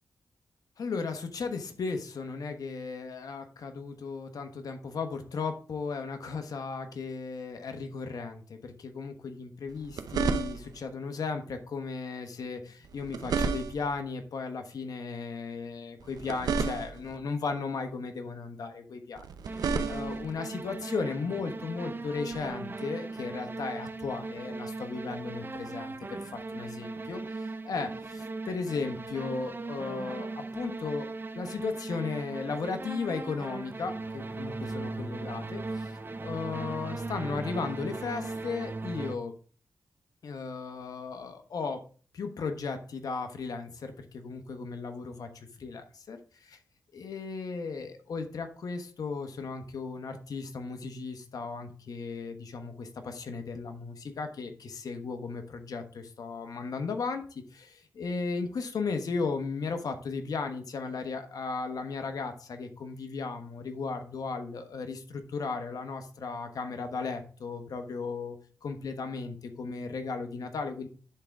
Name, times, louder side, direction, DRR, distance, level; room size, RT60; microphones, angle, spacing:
voice 1, 0.8-19.3 19.6-31.1 31.3-39.3 40.2-41.8 42.1-46.6 46.9-70.9, left 4 dB, 70° left, 6 dB, 1.2 m, -36 dB
sound 1, 9.7-10.9 12.8-14.0 16.0-17.2 19.2-20.3 22.3-22.5, right 5 dB, 75° right, 0.6 m, -32 dB
sound 2, 19.5-39.1, right 3 dB, 30° right, 0.7 m, -38 dB
11.0 x 3.8 x 3.5 m, 0.39 s
cardioid pair, 55°, 7 cm